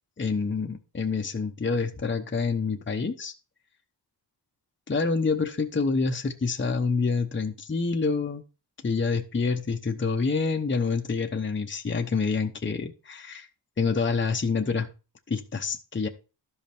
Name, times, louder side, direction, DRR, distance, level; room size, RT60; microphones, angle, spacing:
voice 1, 0.2-3.3 4.9-8.4 8.8-13.5 13.8-14.9 15.3-16.1, left 4 dB, 25° left, 4 dB, 0.9 m, -27 dB
12.0 x 5.3 x 4.4 m, 0.33 s
wide cardioid pair, 105°, 42 cm